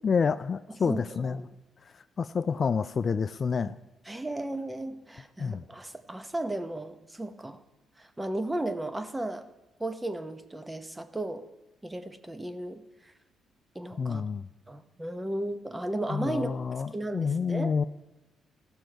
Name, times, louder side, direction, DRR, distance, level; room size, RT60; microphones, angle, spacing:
voice 1, 0.0-1.5 1.8-3.8 5.4-5.6 14.0-14.5 16.1-17.8, left 5 dB, 45° left, 13 dB, 0.3 m, -29 dB
voice 2, 0.9-1.4 4.1-7.6 8.0-9.5 9.8-11.4 11.8-13.1 13.7-14.2 14.7-16.5 16.9-17.7, right 1 dB, 10° right, 10 dB, 0.8 m, -35 dB
15.5 x 6.2 x 4.5 m, 0.99 s
cardioid pair, 90°, 0 cm